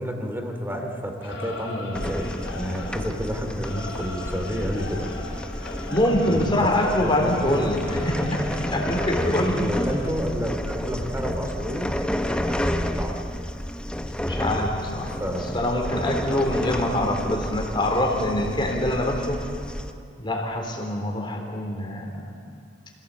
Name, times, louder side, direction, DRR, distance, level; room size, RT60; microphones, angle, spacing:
voice 1, 0.0-2.3 2.6-5.1 6.3-7.7 8.7-11.9 12.4-13.2 15.1-15.6 16.3-16.5, equal, 10° right, 3 dB, 2.9 m, -30 dB
Singing / Musical instrument, 1.2-10.1, left 2 dB, 75° left, 4.3 m, -38 dB
sound 1, 1.9-19.9, equal, 5° left, 0.9 m, -30 dB
voice 2, 5.9-9.7 14.2-19.4 20.2-22.3, left 1 dB, 25° left, 2 dB, 3.5 m, -25 dB
26.0 x 17.5 x 8.5 m, 2.3 s
head